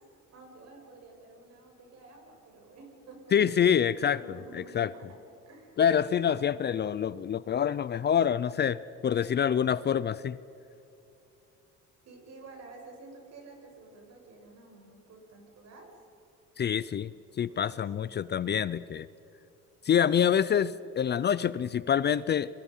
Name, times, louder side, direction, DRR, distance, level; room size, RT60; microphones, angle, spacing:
voice 1, 0.3-5.2 5.5-5.8 12.0-15.9 17.5-18.2, right 3 dB, 55° right, 1 dB, 7.1 m, -51 dB
voice 2, 3.3-4.2 4.5-4.9 5.8-10.4 16.6-17.1 17.4-19.1 19.8-22.5, left 8 dB, 35° left, 17 dB, 0.6 m, -26 dB
29.0 x 23.5 x 5.7 m, 2.7 s
cardioid pair, 130°, 30 cm